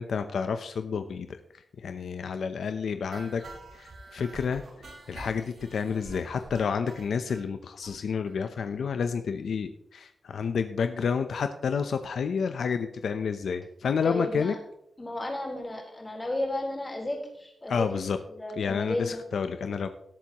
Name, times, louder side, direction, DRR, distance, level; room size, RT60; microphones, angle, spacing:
voice 1, 0.0-1.4 1.8-3.4 3.7-4.6 5.1-14.5 17.7-18.2 18.6-19.9, left 6 dB, 75° left, 8 dB, 0.7 m, -30 dB
sound 1, 3.1-7.4 7.8-7.9 8.3-8.4 8.6-8.7 9.0-9.1, right 2 dB, 70° right, 5.5 m, -46 dB
voice 2, 14.0-14.6 15.0-17.9 18.1-19.2, left 1 dB, 20° left, -1 dB, 3.8 m, -33 dB
18.5 x 8.4 x 3.0 m, 0.77 s
wide cardioid pair, 110°, 0 cm